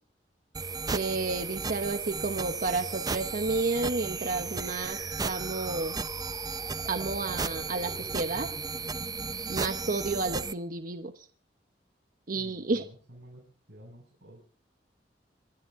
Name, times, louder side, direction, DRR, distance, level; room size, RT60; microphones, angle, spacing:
sound 1, 0.6-10.5, right 4 dB, 20° right, 0.7 m, -34 dB
voice 1, 0.9-6.0 6.9-8.5 9.5-11.3 12.3-12.9, right 3 dB, 55° right, 8 dB, 1.0 m, -31 dB
voice 2, 13.7-14.4, equal, 85° right, -2 dB, 6.3 m, -50 dB
26.5 x 11.0 x 3.7 m, 0.41 s
head